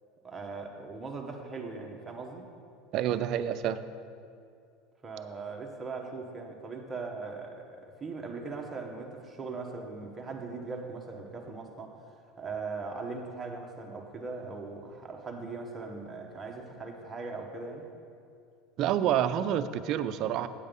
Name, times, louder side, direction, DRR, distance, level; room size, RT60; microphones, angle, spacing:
voice 1, 0.2-2.5 5.0-11.9 12.4-17.9, right 4 dB, 15° right, 1 dB, 1.3 m, -39 dB
voice 2, 2.9-3.8 18.8-20.5, right 10 dB, 50° right, 11 dB, 0.5 m, -28 dB
8.5 x 8.1 x 5.3 m, 2.4 s
supercardioid pair, 125°, 0 cm